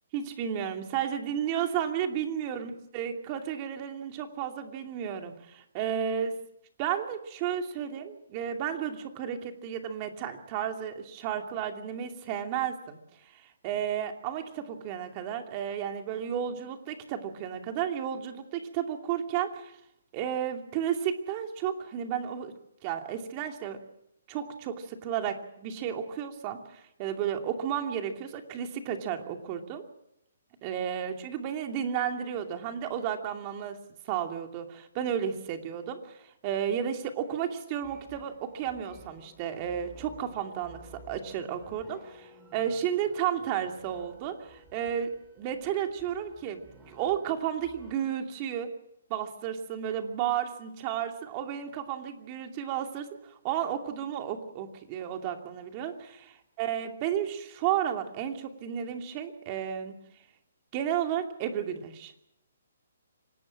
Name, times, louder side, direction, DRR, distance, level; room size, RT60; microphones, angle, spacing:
voice 1, 0.1-6.3 6.8-13.0 13.2-19.7 20.1-22.5 22.8-23.8 24.3-29.8 30.6-33.8 34.1-40.8 41.1-45.1 45.4-48.7 49.1-59.9 60.7-62.1, right 9 dB, 25° right, 5 dB, 2.6 m, -33 dB
sound 1, 37.8-48.0, equal, 10° right, 5.3 m, -54 dB
25.5 x 18.5 x 7.4 m, 0.78 s
hypercardioid pair, 165°, 0 cm